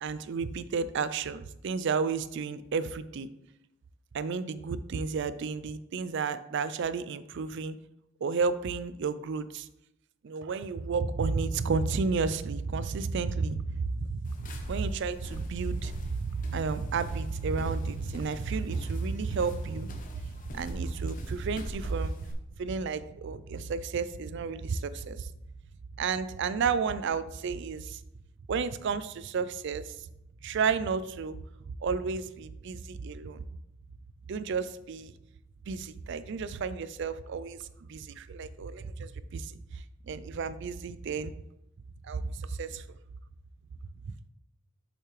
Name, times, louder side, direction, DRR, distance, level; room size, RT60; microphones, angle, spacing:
voice 1, 0.0-3.3 4.1-7.8 8.2-9.7 10.2-22.1 22.6-25.3 26.0-28.0 28.5-29.9 30.4-31.4 31.8-33.4 34.3-35.1 35.7-37.6 37.9-39.6 40.1-41.3 42.0-42.8, right 5 dB, 60° right, 14 dB, 0.4 m, -32 dB
sound 1, 14.2-22.3, left 1 dB, 40° left, 0.8 m, -45 dB
7.2 x 5.6 x 3.2 m, 0.85 s
head